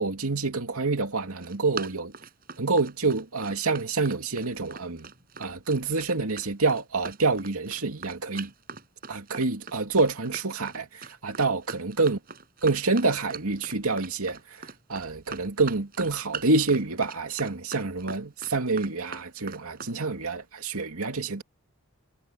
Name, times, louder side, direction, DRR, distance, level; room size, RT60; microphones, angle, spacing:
voice 1, 0.0-2.1 2.6-5.1 5.4-8.5 9.1-12.2 12.6-21.4, right 3 dB, 75° right, 2.6 m, -27 dB
Run, 1.2-19.9, right 5 dB, 40° right, 7.6 m, -41 dB
head